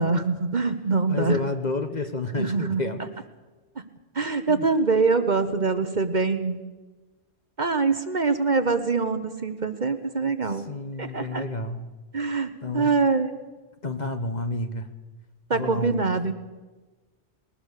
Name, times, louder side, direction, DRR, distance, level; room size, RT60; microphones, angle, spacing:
voice 1, 0.0-1.4 2.4-2.8 4.1-6.6 7.6-10.6 11.0-11.4 12.1-13.4 15.5-16.3, right 4 dB, 40° right, 10 dB, 1.2 m, -24 dB
voice 2, 1.1-3.0 4.5-4.6 10.7-11.8 12.6-12.9 13.8-14.9 15.5-16.1, left 2 dB, 40° left, 8 dB, 1.2 m, -30 dB
20.5 x 19.5 x 6.6 m, 1.3 s
omnidirectional pair, 1.2 m